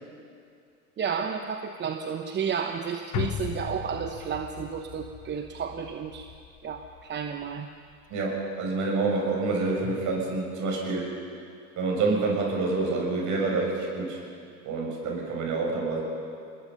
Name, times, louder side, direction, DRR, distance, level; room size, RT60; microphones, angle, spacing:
voice 1, 1.0-6.3 6.6-7.7, right 7 dB, 25° right, 6 dB, 1.1 m, -32 dB
sound 1, 3.1-7.6 7.9-8.0, left 11 dB, 40° left, 1.3 m, -37 dB
voice 2, 8.1-11.1 11.8-14.2 14.7-16.0, right 3 dB, 40° right, -1 dB, 7.4 m, -27 dB
27.0 x 20.5 x 5.6 m, 2.4 s
hypercardioid pair, 90°, 44 cm